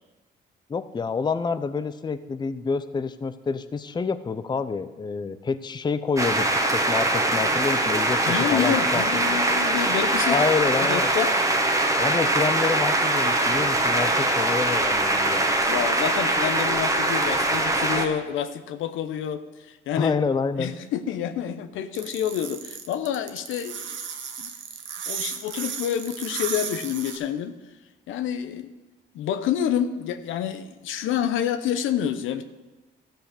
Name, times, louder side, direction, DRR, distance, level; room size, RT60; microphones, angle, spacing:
voice 1, 0.7-9.2 10.3-11.1 12.0-15.6 20.0-20.7, left 5 dB, 20° left, 12 dB, 0.5 m, -28 dB
sound 1, 6.2-18.1, right 2 dB, 15° right, 1.3 m, -22 dB
voice 2, 8.3-10.4 10.8-11.3 15.7-20.1 20.6-24.0 24.4-24.5 25.1-27.5 28.1-28.7 29.1-32.4, left 9 dB, 85° left, 11 dB, 0.8 m, -28 dB
sound 2, 21.9-27.2, right 7 dB, 75° right, 1.3 m, -34 dB
13.0 x 5.7 x 6.7 m, 1.1 s
cardioid pair, 90°, 20 cm